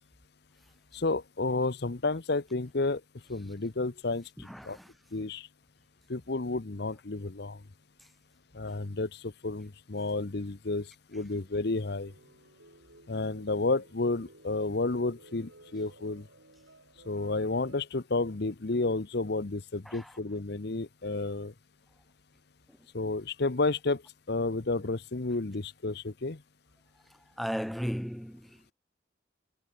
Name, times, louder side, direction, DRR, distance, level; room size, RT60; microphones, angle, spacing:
voice 1, 0.9-3.0 3.3-4.2 4.6-4.8 5.1-5.5 6.1-7.6 8.5-12.1 13.1-16.3 17.1-21.5 22.9-24.0 24.3-26.4, left 3 dB, 55° left, 0.9 m, -31 dB
voice 2, 4.5-4.9 19.9-20.1 27.4-28.7, equal, ahead, 0.8 m, -35 dB
sound 1, 11.1-17.8, right 2 dB, 80° right, 4.2 m, -57 dB
head